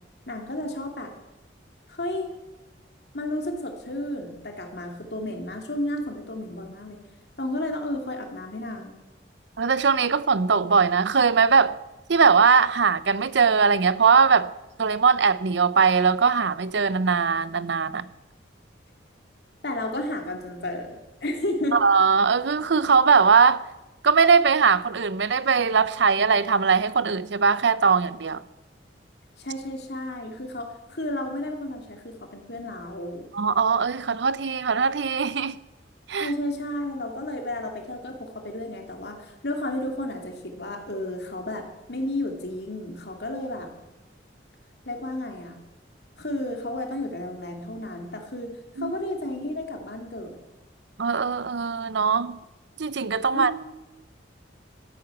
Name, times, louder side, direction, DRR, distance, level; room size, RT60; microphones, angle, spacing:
voice 1, 0.3-1.1 1.9-2.3 3.1-7.0 7.4-9.0 19.6-21.8 29.4-33.3 36.2-43.7 44.8-45.6 46.2-50.4 53.3-53.7, left 1 dB, 60° left, 2.7 m, -32 dB
voice 2, 9.6-11.8 12.1-14.5 14.8-18.0 21.7-23.7 24.0-28.4 33.3-35.6 36.1-36.3 48.8-48.9 51.0-52.4 52.8-53.5, right 5 dB, 70° right, 0.6 m, -20 dB
13.5 x 10.5 x 8.4 m
head